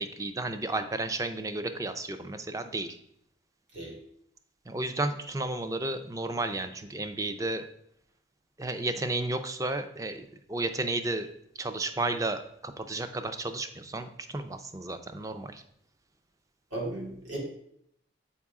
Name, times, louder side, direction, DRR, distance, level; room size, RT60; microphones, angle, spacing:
voice 1, 0.0-3.0 4.7-7.7 8.6-11.3 11.6-15.6, right 2 dB, 15° right, 9 dB, 0.4 m, -33 dB
voice 2, 16.7-17.4, right 1 dB, 70° right, -4 dB, 2.4 m, -35 dB
7.2 x 4.6 x 3.6 m, 0.72 s
head